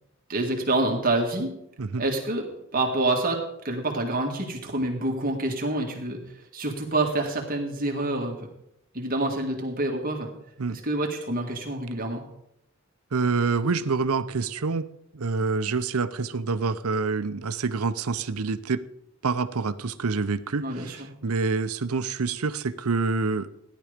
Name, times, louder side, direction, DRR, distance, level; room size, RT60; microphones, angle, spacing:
voice 1, 0.3-1.6 2.0-2.5 2.7-6.2 6.5-8.5 8.9-10.3 10.7-12.2 20.6-21.1, right 2 dB, 40° right, 1 dB, 1.9 m, -27 dB
voice 2, 13.1-14.9 15.1-18.8 19.2-23.5, right 4 dB, 80° right, 12 dB, 0.7 m, -27 dB
15.5 x 11.0 x 5.1 m, 0.81 s
head